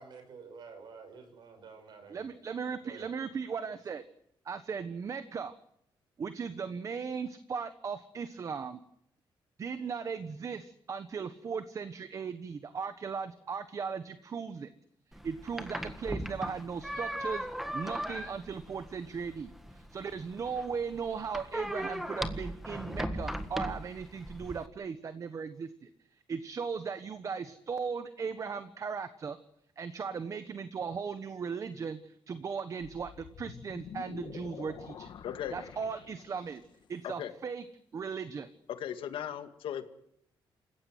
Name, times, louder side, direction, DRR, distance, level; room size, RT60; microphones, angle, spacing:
voice 1, 0.0-2.4 2.8-3.1, right 5 dB, 55° right, 8 dB, 6.0 m, -50 dB
voice 2, 2.1-4.0 4.4-5.5 6.2-8.8 9.6-14.7 15.2-17.5 17.7-25.9 26.3-29.4 29.8-35.1 35.5-36.6 36.9-37.6 37.9-38.5, right 6 dB, 40° right, 11 dB, 1.2 m, -37 dB
sound 1, 15.1-24.7, equal, 5° right, 1.6 m, -38 dB
sound 2, 32.8-36.8, left 8 dB, 60° left, 1.9 m, -47 dB
voice 3, 35.2-35.6 37.0-37.3 38.8-39.9, left 9 dB, 85° left, 8 dB, 2.2 m, -37 dB
28.5 x 16.0 x 7.8 m, 0.74 s
cardioid pair, 150°, 9 cm